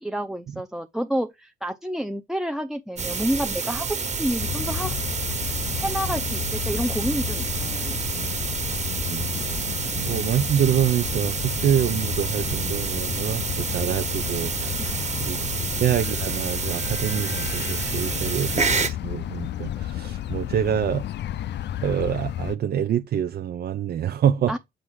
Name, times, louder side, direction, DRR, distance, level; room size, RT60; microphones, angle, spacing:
voice 1, 0.0-5.0 5.7-8.1 14.8-15.3 24.5-24.6, equal, ahead, 0.7 m, -29 dB
sound 1, 3.0-18.9, right 5 dB, 35° right, 1.5 m, -29 dB
sound 2, 4.4-22.6, left 12 dB, 60° left, 0.5 m, -32 dB
voice 2, 9.1-9.7 10.0-15.4 15.8-21.0 21.8-24.5, right 9 dB, 55° right, 0.6 m, -26 dB
8.4 x 3.9 x 4.6 m
cardioid pair, 90°, 20 cm